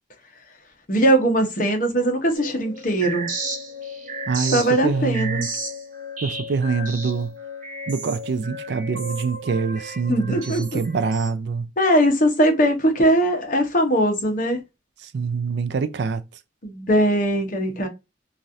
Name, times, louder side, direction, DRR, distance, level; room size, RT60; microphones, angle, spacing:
voice 1, 0.9-3.3 4.5-5.4 10.1-10.8 11.8-14.6 16.6-17.9, right 1 dB, 45° left, 0.9 m, -20 dB
sound 1, 2.4-11.3, right 1 dB, 45° right, 0.9 m, -33 dB
voice 2, 4.3-5.5 6.2-7.3 7.9-11.7 15.0-16.2, right 5 dB, 65° right, 0.4 m, -25 dB
3.1 x 2.5 x 2.6 m
head